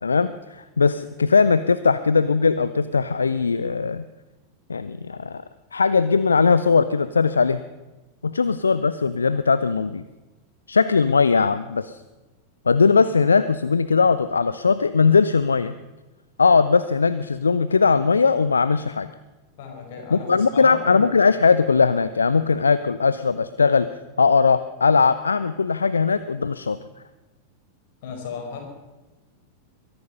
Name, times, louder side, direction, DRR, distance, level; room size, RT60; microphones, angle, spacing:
voice 1, 0.0-4.0 4.7-5.4 5.7-7.6 8.2-10.0 10.7-12.0 12.7-15.8 16.4-19.1 20.1-23.9 24.2-26.8, left 5 dB, 75° left, 14 dB, 0.5 m, -19 dB
voice 2, 19.6-21.1 28.0-28.6, left 5 dB, 50° left, 2 dB, 4.7 m, -35 dB
22.5 x 11.5 x 5.5 m, 1.1 s
figure-of-eight pair, 90°, 0 cm